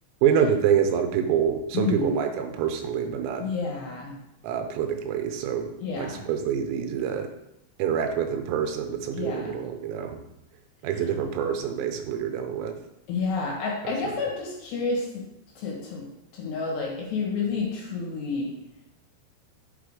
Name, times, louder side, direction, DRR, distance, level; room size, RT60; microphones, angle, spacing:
voice 1, 0.2-3.5 4.4-7.3 7.8-10.2 10.8-12.8 14.0-14.2, right 8 dB, 90° right, 6 dB, 3.6 m, -26 dB
voice 2, 1.7-2.2 3.4-4.2 5.8-6.3 9.1-9.6 13.1-15.3 15.6-16.1 16.3-18.6, left 4 dB, 60° left, -2 dB, 3.5 m, -30 dB
8.0 x 6.1 x 4.9 m, 0.85 s
omnidirectional pair, 6.0 m